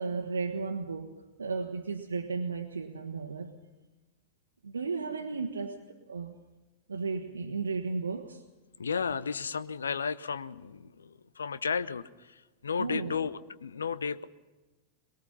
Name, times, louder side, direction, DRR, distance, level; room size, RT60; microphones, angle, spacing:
voice 1, 0.0-3.5 4.6-6.4 6.9-8.4 12.8-13.2, right 4 dB, 75° right, 1.3 m, -34 dB
voice 2, 8.8-14.2, left 6 dB, 70° left, 0.7 m, -33 dB
23.0 x 22.0 x 5.6 m
figure-of-eight pair, 90°, 0 cm